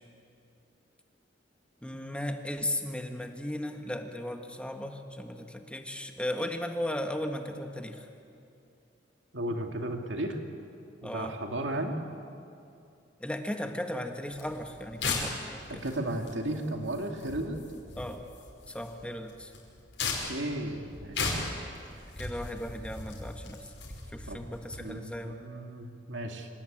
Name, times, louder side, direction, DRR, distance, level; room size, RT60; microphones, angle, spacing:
voice 1, 1.8-8.1 11.0-11.4 13.2-15.4 15.7-15.8 17.9-18.2 18.7-19.5 22.2-23.7 24.1-25.4, left 1 dB, 5° left, 5 dB, 1.6 m, -36 dB
voice 2, 9.3-10.4 11.0-11.9 15.8-17.6 20.2-21.4 24.3-24.5 24.8-26.5, right 1 dB, 85° right, 3 dB, 2.4 m, -34 dB
sound 1, 14.3-24.8, left 3 dB, 80° left, 5.4 m, -38 dB
26.5 x 18.0 x 8.8 m, 2.6 s
head